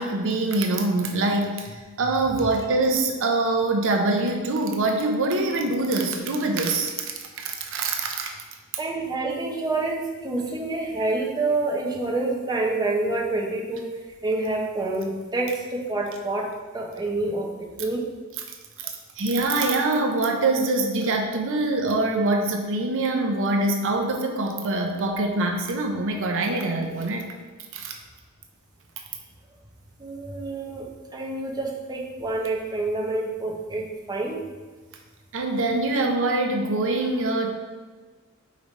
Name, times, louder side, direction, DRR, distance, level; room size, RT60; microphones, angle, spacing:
voice 1, 0.0-1.7 2.0-8.3 19.2-27.3 27.7-27.9 35.3-37.5, right 2 dB, 60° right, 3 dB, 0.7 m, -24 dB
voice 2, 8.8-13.9 14.2-18.0 30.0-34.5, right 2 dB, 20° right, -2 dB, 0.8 m, -27 dB
5.1 x 4.9 x 4.0 m, 1.4 s
head